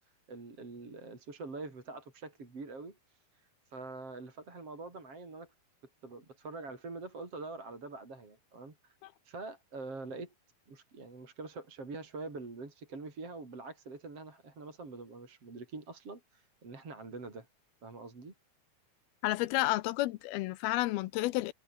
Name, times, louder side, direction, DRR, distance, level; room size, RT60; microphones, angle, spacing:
voice 1, 0.3-3.0 3.7-5.5 6.0-9.0 9.2-10.3 10.7-17.5 17.8-18.3, right 3 dB, 40° right, 5.9 m, -45 dB
voice 2, 19.2-21.5, left 18 dB, 85° left, 2.6 m, -31 dB
omnidirectional pair, 4.4 m